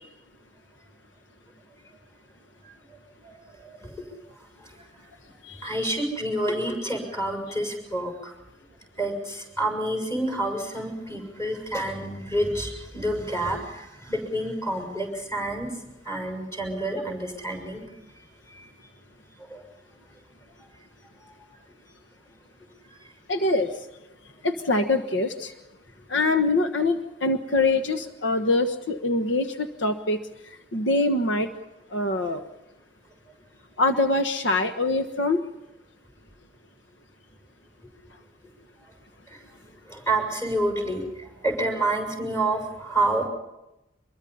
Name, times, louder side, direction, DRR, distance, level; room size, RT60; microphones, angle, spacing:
voice 1, 3.2-3.9 5.6-8.3 9.0-15.7 16.0-17.9 18.5-18.7 19.5-19.6 39.9-43.3, right 1 dB, 20° left, 2 dB, 6.7 m, -28 dB
voice 2, 23.3-23.7 24.4-25.5 26.1-31.5 31.9-32.4 33.8-35.4, left 2 dB, 85° left, 7 dB, 1.3 m, -24 dB
25.0 x 22.5 x 5.6 m, 0.95 s
head